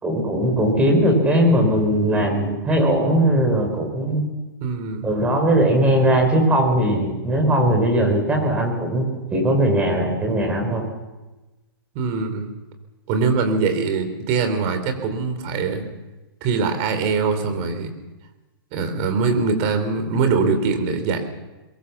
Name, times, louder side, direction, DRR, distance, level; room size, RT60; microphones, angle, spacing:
voice 1, 0.0-4.2 5.0-10.9, right 1 dB, 10° right, 2 dB, 4.3 m, -19 dB
voice 2, 4.6-5.1 11.9-12.5 13.1-15.9 16.4-17.9 18.7-21.2, right 4 dB, 30° right, 8 dB, 3.4 m, -22 dB
22.5 x 22.0 x 7.2 m, 1.1 s
hypercardioid pair, 160°, 13 cm